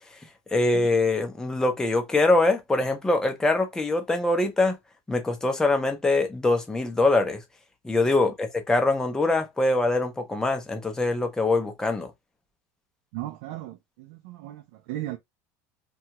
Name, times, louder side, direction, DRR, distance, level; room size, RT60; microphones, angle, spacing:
voice 1, 0.5-4.8 5.1-7.4 7.8-12.1, left 2 dB, 10° left, 0.6 m, -23 dB
voice 2, 13.1-15.2, right 15 dB, 80° right, 0.4 m, -36 dB
2.8 x 2.3 x 2.8 m
cardioid pair, 150°, 8 cm